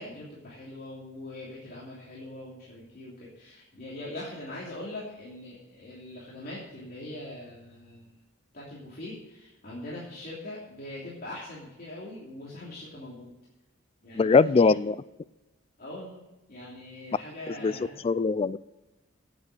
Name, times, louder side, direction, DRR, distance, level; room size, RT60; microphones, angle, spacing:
voice 1, 0.0-8.2 8.5-13.3 14.0-14.8 15.8-16.2 16.5-18.0, left 1 dB, 50° left, -7 dB, 3.0 m, -42 dB
voice 2, 14.1-15.0 17.6-17.7 18.0-18.6, left 4 dB, 30° left, 18 dB, 0.3 m, -21 dB
9.5 x 8.6 x 7.7 m, 1.0 s
head